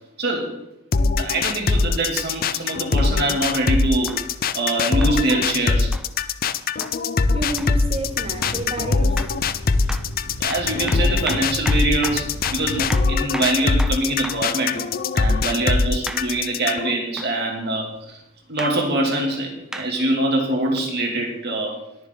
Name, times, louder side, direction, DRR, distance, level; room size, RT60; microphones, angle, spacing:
voice 1, 0.2-0.5 1.2-4.2 4.5-5.9 10.4-14.9 15.1-18.2 18.5-21.8, right 1 dB, 50° right, 2.6 m, -24 dB
sound 1, 0.9-16.9, left 4 dB, 45° left, 0.5 m, -22 dB
sound 2, 3.0-3.1 4.1-4.3 5.0-5.2 5.9-6.1 6.8-7.0 7.6-7.8 8.4-8.7 9.2-9.4 9.9-10.1 10.5-14.5 16.1-16.3 17.2-17.4 18.6-18.8 19.7-19.9 20.8-20.9, right 1 dB, 5° right, 0.6 m, -35 dB
voice 2, 7.3-9.3 15.5-15.6, right 1 dB, 25° right, 1.5 m, -30 dB
sound 3, 7.5-12.9, left 1 dB, 80° left, 1.1 m, -34 dB
20.5 x 7.0 x 3.9 m
head